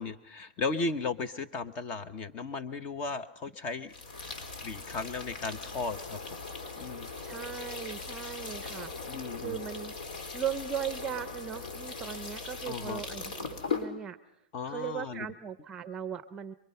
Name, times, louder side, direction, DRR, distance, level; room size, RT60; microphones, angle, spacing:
voice 1, 0.0-3.9 4.6-6.2 6.8-7.1 9.1-9.6 12.7-13.0 14.5-15.3, left 4 dB, 30° left, 10 dB, 1.3 m, -35 dB
sound 1, 3.9-13.9, left 4 dB, 65° left, 4.2 m, -39 dB
voice 2, 7.2-8.9 9.4-9.9 10.3-14.2 14.7-16.5, right 8 dB, 15° right, 13 dB, 0.8 m, -38 dB
26.5 x 23.5 x 5.8 m, 0.80 s
hypercardioid pair, 150°, 5 cm